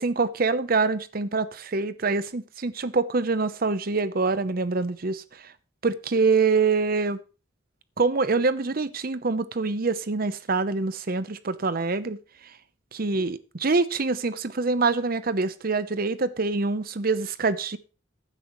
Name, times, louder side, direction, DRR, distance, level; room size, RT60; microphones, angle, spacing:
voice 1, 0.0-5.5 5.8-7.2 8.0-12.2 12.9-17.8, right 4 dB, 50° right, 0.8 m, -25 dB
15.5 x 9.9 x 3.1 m
head